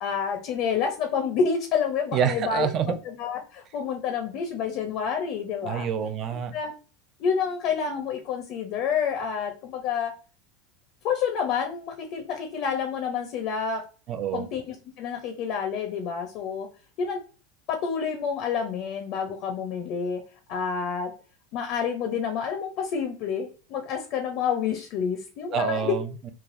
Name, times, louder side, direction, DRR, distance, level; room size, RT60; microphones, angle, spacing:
voice 1, 0.0-5.9 6.5-6.7 7.2-10.1 11.0-13.8 14.3-16.7 17.0-17.2 17.7-20.2 20.5-21.1 21.5-25.9, left 6 dB, 55° left, 0.6 m, -28 dB
voice 2, 2.1-3.0 5.6-6.5 14.1-14.5 25.5-26.3, right 9 dB, 40° right, 0.4 m, -27 dB
3.3 x 2.3 x 2.5 m
supercardioid pair, 120°, 0 cm